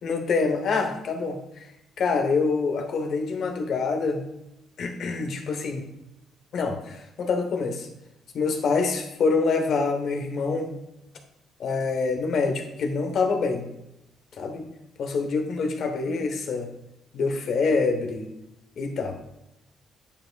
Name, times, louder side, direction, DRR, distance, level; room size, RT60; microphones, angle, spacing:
voice 1, 0.0-1.7 2.0-4.2 4.8-5.9 6.5-7.9 8.3-10.7 11.6-13.7 14.4-14.6 15.0-16.7 17.1-18.3 18.8-19.2, left 4 dB, 65° left, 4 dB, 1.0 m, -26 dB
8.8 x 5.5 x 2.3 m, 0.87 s
cardioid pair, 90°, 0 cm